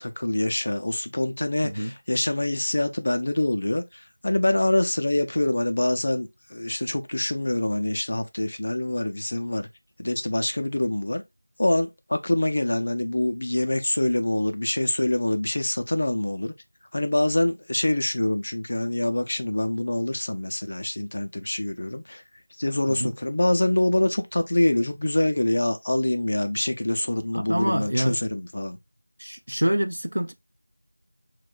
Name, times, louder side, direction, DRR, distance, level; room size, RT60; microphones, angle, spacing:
voice 1, 0.0-9.7 10.0-11.2 11.6-16.5 16.9-22.2 22.6-28.8, left 1 dB, 30° left, 0.3 m, -25 dB
voice 2, 27.3-28.2 29.2-30.3, right 1 dB, 85° right, 0.5 m, -26 dB
6.0 x 2.1 x 2.3 m
figure-of-eight pair, 180°, 0 cm